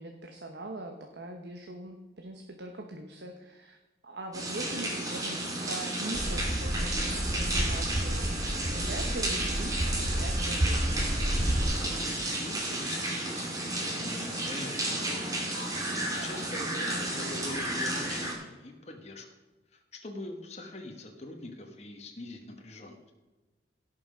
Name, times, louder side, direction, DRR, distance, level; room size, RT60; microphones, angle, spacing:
voice 1, 0.0-3.8 4.0-8.3 8.7-11.0 16.1-16.5, right 2 dB, 75° right, 3 dB, 1.1 m, -42 dB
sound 1, 4.3-18.3, right 1 dB, 20° right, 2.2 m, -33 dB
sound 2, 6.1-11.6, right 1 dB, 40° right, 1.2 m, -30 dB
voice 2, 12.4-15.6 15.9-19.3 19.7-23.1, left 2 dB, 35° left, 2 dB, 1.3 m, -43 dB
17.0 x 5.9 x 5.1 m, 1.2 s
head